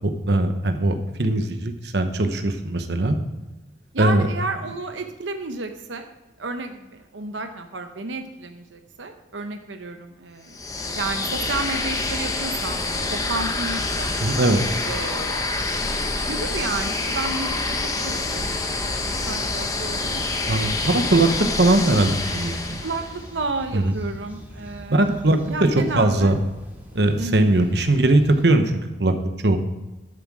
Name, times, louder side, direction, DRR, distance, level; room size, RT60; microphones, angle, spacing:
voice 1, 0.3-3.2 4.0-4.3 14.2-14.6 20.4-21.3 21.6-22.8 23.7-23.9 24.9-25.7 26.0-26.4 26.9-28.7 29.0-29.1 29.4-29.6, right 2 dB, 65° right, 7 dB, 1.0 m, -20 dB
voice 2, 3.9-6.1 6.4-12.8 13.1-14.1 14.8-21.1 22.8-26.4 27.2-27.5, right 3 dB, 90° right, 6 dB, 0.9 m, -32 dB
sound 1, 10.5-23.3, left 3 dB, 20° left, 0.9 m, -27 dB
sound 2, 18.2-28.5, equal, 10° right, 2.0 m, -43 dB
11.5 x 7.5 x 4.7 m, 1.1 s
head